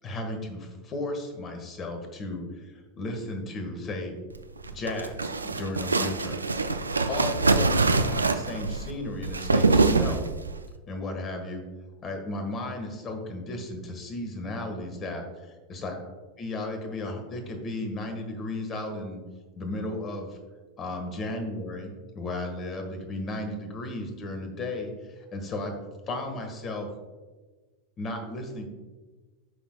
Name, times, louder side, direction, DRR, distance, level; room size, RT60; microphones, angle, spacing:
voice 1, 0.0-4.2 4.7-6.3 7.1-10.3 10.9-11.6 12.0-16.0 16.4-19.2 19.6-20.4 20.8-24.9 25.3-25.7 26.1-26.9 28.0-28.7, left 2 dB, 30° left, 5 dB, 1.5 m, -34 dB
sound 1, 4.6-10.6, right 3 dB, 85° right, 0.4 m, -24 dB
13.0 x 5.9 x 2.3 m, 1.3 s
figure-of-eight pair, 85°, 0 cm